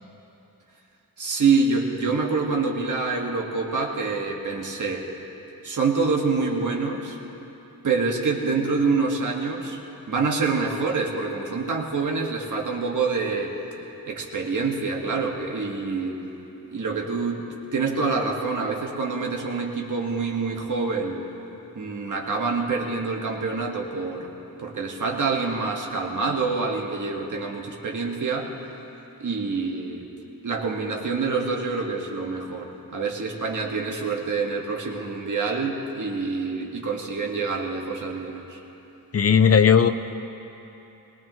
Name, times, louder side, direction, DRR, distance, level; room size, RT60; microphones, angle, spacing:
voice 1, 1.2-5.1 5.6-7.2 7.8-9.8 10.1-13.6 14.1-16.2 16.7-21.2 21.8-24.3 24.6-28.5 29.2-30.1 30.4-38.6, right 4 dB, 55° right, 0 dB, 1.7 m, -26 dB
voice 2, 39.1-39.9, left 7 dB, 40° left, 8 dB, 0.6 m, -16 dB
22.0 x 19.5 x 3.1 m, 3.0 s
wide cardioid pair, 170°, 36 cm